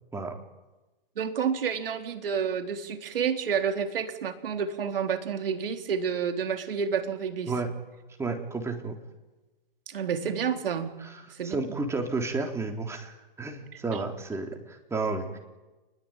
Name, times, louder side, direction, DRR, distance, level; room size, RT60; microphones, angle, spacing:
voice 1, 1.2-7.5 9.9-10.9 11.3-11.6 13.9-14.0, right 7 dB, 70° right, 5 dB, 4.0 m, -29 dB
voice 2, 7.5-7.8 8.2-9.0 11.0-15.4, right 3 dB, 10° right, 3 dB, 3.7 m, -32 dB
29.0 x 21.0 x 9.2 m, 1.1 s
hypercardioid pair, 130°, 29 cm